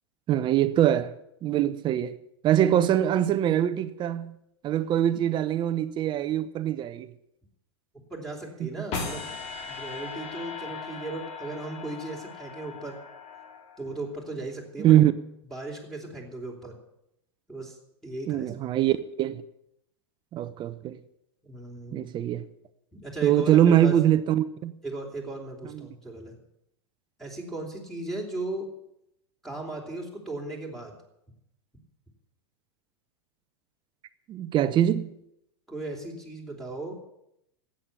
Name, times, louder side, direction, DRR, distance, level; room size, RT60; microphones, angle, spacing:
voice 1, 0.3-1.1 1.4-2.2 2.4-4.3 4.6-7.1 8.6-8.7 14.8-15.1 18.3-19.4 20.3-21.0 21.9-22.4 23.2-24.7 34.3-35.1, right 11 dB, 35° right, 1.0 m, -23 dB
voice 2, 8.1-9.2 9.7-13.0 13.8-15.0 15.5-16.8 17.5-17.8 18.0-18.6 21.4-22.1 22.9-24.0 24.8-26.3 27.2-28.7 29.4-30.9 35.7-36.9, right 2 dB, ahead, 3.9 m, -36 dB
sound 1, 8.9-14.1, left 4 dB, 50° left, 3.3 m, -38 dB
13.0 x 8.9 x 9.9 m
hypercardioid pair, 105°, 14 cm